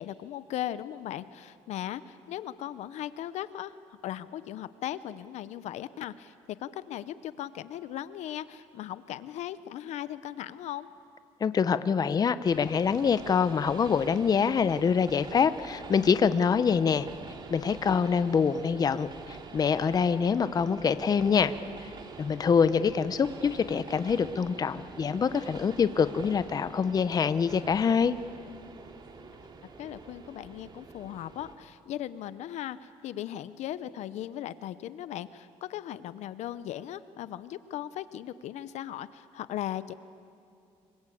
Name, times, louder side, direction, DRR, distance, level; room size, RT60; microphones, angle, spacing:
voice 1, 0.0-3.8 4.0-10.9 29.8-39.9, left 12 dB, 70° left, 15 dB, 0.8 m, -38 dB
voice 2, 11.4-17.1 17.5-21.5 21.8-21.9 22.2-28.1, left 6 dB, 35° left, 13 dB, 0.8 m, -25 dB
Train, 12.4-31.6, right 4 dB, 40° right, 2.5 m, -46 dB
25.5 x 24.0 x 8.6 m, 2.5 s
cardioid pair, 125°, 12 cm